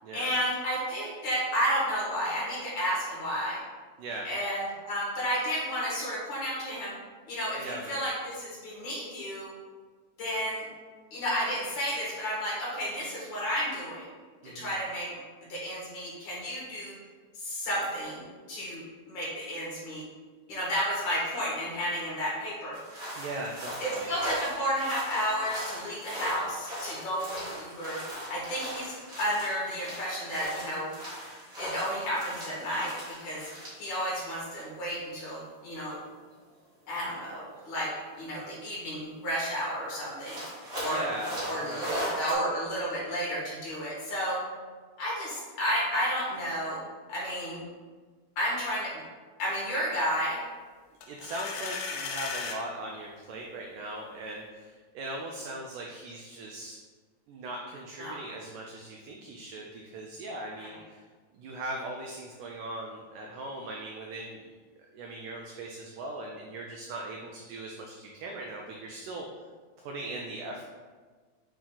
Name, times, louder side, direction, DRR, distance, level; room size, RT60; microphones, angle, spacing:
voice 1, 0.1-3.6 4.2-6.9 7.3-9.5 10.2-10.6 11.1-14.1 14.4-15.2 15.5-16.9 17.3-18.8 19.1-20.0 20.5-22.8 23.8-28.0 28.3-30.9 31.6-33.4 33.8-36.0 36.9-37.9 38.2-40.4 40.8-41.0 41.5-44.4 45.0-46.8 47.1-47.7 48.4-48.9 49.4-50.4 58.0-58.1 60.6-60.8, equal, 60° left, -6 dB, 2.7 m, -32 dB
voice 2, 4.0-4.3 7.6-8.0 14.4-14.8 23.1-24.2 40.8-42.0 51.1-56.8 57.3-61.0 61.3-64.5 64.9-69.3 69.8-70.6, right 2 dB, 85° right, 0 dB, 1.8 m, -39 dB
sound 1, 22.7-34.6 34.9-35.0 36.1-36.2 38.3-38.4 38.8-38.9 39.2-39.3 40.1-42.3, equal, 40° right, 0.9 m, -38 dB
sound 2, 51.0-52.6, left 5 dB, 80° left, 2.4 m, -35 dB
8.4 x 3.0 x 3.9 m, 1.4 s
omnidirectional pair, 4.4 m